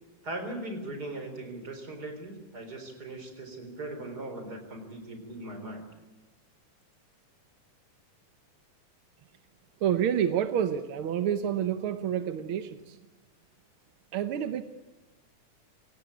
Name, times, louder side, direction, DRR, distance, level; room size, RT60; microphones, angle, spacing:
voice 1, 0.2-5.9, right 1 dB, 30° right, 6 dB, 4.4 m, -39 dB
voice 2, 9.8-13.0 14.1-14.6, right 9 dB, 70° right, 10 dB, 1.3 m, -28 dB
26.0 x 17.5 x 8.4 m, 1.2 s
omnidirectional pair, 3.5 m